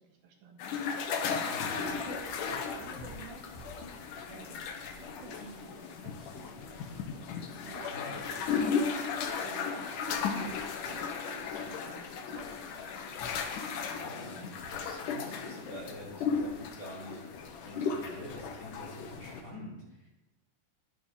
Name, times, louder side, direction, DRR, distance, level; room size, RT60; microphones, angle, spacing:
voice 1, 0.0-3.7 4.3-6.8 7.6-12.7, right 5 dB, 80° right, 1 dB, 3.7 m, -51 dB
sound 1, 0.6-19.6, left 2 dB, 90° left, 3.6 m, -54 dB
sound 2, 0.6-19.4, left 5 dB, 70° left, 2.5 m, -36 dB
voice 2, 1.5-2.0 7.9-8.2 13.7-20.1, equal, 25° left, -3 dB, 3.1 m, -47 dB
20.5 x 9.0 x 3.9 m, 0.98 s
omnidirectional pair, 4.1 m